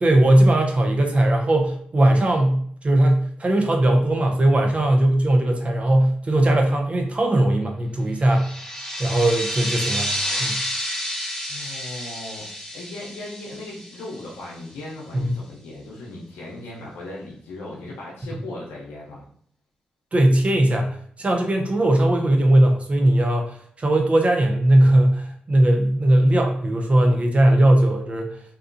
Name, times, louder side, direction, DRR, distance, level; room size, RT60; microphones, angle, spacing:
voice 1, 0.0-8.5 9.0-10.1 10.4-10.6 15.1-15.3 20.1-28.3, right 1 dB, 35° right, 2 dB, 0.5 m, -19 dB
sound 1, 8.3-14.6, equal, 10° left, 0.6 m, -30 dB
voice 2, 11.5-19.2, left 2 dB, 85° left, -4 dB, 0.5 m, -37 dB
2.7 x 2.2 x 2.4 m, 0.63 s
cardioid pair, 55°, 3 cm